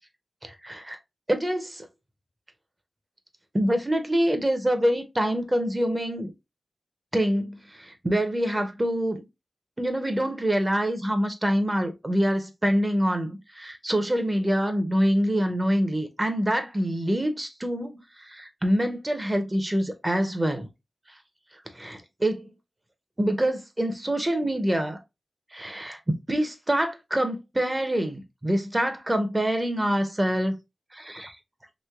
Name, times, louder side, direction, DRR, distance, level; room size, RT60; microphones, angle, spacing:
voice 1, 0.4-1.0 1.3-1.9 3.5-6.3 7.1-9.2 9.8-20.7 21.7-22.5 23.2-25.0 25.5-26.0 26.3-30.5 30.9-31.4, equal, 20° right, 0.6 m, -25 dB
3.1 x 2.9 x 2.3 m
wide cardioid pair, 80°, 0 cm